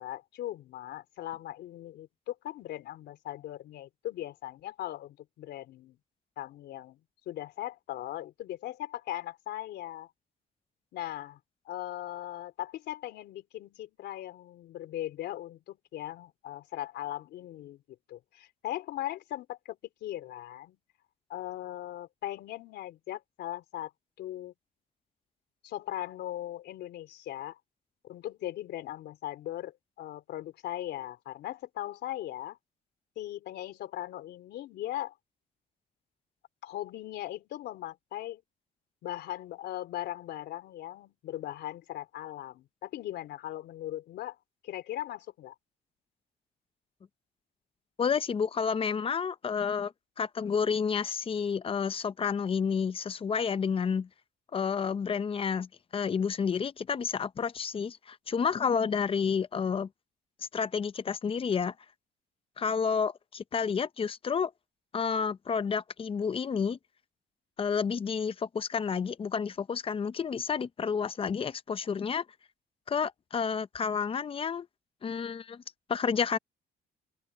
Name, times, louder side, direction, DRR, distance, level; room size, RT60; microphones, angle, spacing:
voice 1, 0.0-6.0 6.4-7.0 7.3-10.1 10.9-11.4 11.7-17.8 18.1-20.8 21.3-23.9 24.2-24.5 25.6-27.6 28.0-32.6 33.2-35.1 36.6-38.4 39.0-44.4 44.6-45.6, left 13 dB, 80° left, 3.6 m, -39 dB
voice 2, 48.0-49.9 50.2-54.1 54.5-59.9 60.5-61.7 62.6-64.5 64.9-66.8 67.6-72.2 72.9-74.7 75.0-75.6 75.9-76.4, left 6 dB, 30° left, 0.7 m, -30 dB
open air
cardioid pair, 115°, 17 cm